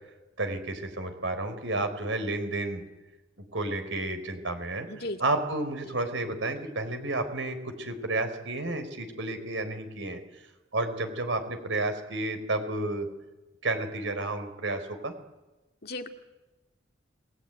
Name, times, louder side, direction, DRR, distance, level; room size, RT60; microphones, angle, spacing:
voice 1, 0.4-2.8 3.5-10.2 10.7-13.1 13.6-15.1, right 2 dB, 90° right, 8 dB, 4.3 m, -31 dB
voice 2, 4.9-5.2 15.8-16.1, left 1 dB, 55° left, 4 dB, 2.3 m, -35 dB
29.0 x 20.0 x 9.2 m, 1.1 s
head